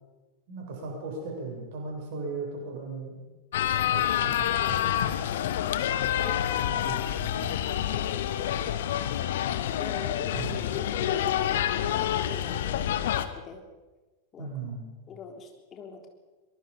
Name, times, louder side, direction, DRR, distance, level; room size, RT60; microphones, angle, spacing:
voice 1, 0.5-3.2 3.9-5.2 6.0-7.6 10.3-10.7 14.4-14.9, right 3 dB, 50° right, 0 dB, 7.7 m, -38 dB
sound 1, 3.5-13.3, left 11 dB, 55° left, 1.2 m, -28 dB
voice 2, 9.8-13.6 14.3-14.5 15.1-16.1, left 5 dB, 25° left, 3 dB, 3.7 m, -41 dB
24.0 x 23.0 x 5.5 m, 1.2 s
figure-of-eight pair, 90°, 0 cm